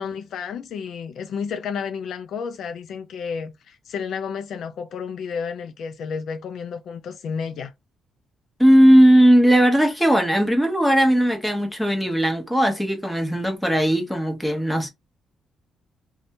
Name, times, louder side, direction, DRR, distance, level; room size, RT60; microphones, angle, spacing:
voice 1, 0.0-7.7, left 6 dB, 70° left, 0.4 m, -31 dB
voice 2, 8.6-14.9, equal, 5° left, 1.0 m, -17 dB
2.6 x 2.3 x 2.8 m
cardioid pair, 90°, 0 cm